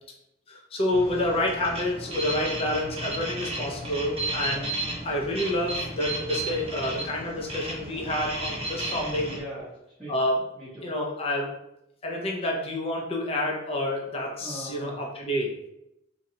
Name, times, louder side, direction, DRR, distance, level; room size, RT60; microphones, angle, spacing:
voice 1, 0.5-4.7 5.0-9.3 10.1-10.4 10.8-11.5 12.0-15.6, left 1 dB, 30° left, -1 dB, 0.4 m, -28 dB
sound 1, 0.9-9.4, right 1 dB, 30° right, 0.6 m, -34 dB
voice 2, 9.0-9.7 10.0-10.2 10.5-10.9 14.4-15.0, right 1 dB, 5° right, -13 dB, 0.8 m, -40 dB
2.6 x 2.2 x 2.7 m, 0.83 s
head